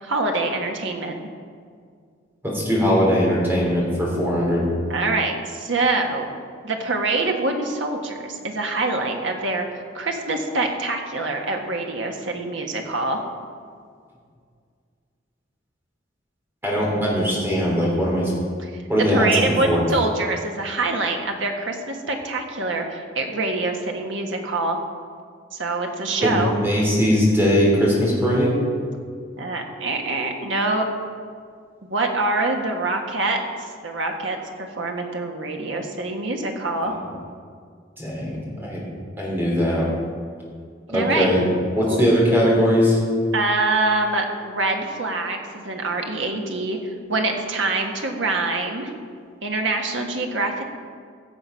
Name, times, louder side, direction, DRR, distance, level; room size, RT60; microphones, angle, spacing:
voice 1, 0.0-1.1 4.9-6.3 6.6-13.2 18.6-24.8 25.5-26.5 29.4-30.9 31.8-36.9 40.9-41.3 41.9-42.0 43.3-48.9 49.4-50.6, right 2 dB, 85° right, 2 dB, 1.5 m, -25 dB
voice 2, 2.4-4.7 16.6-18.3 18.9-19.8 26.2-28.5 36.8-37.0 38.0-38.8 39.2-39.8 40.9-41.5 41.8-43.0, equal, 10° right, -4 dB, 3.2 m, -20 dB
15.5 x 6.8 x 5.7 m, 2.1 s
head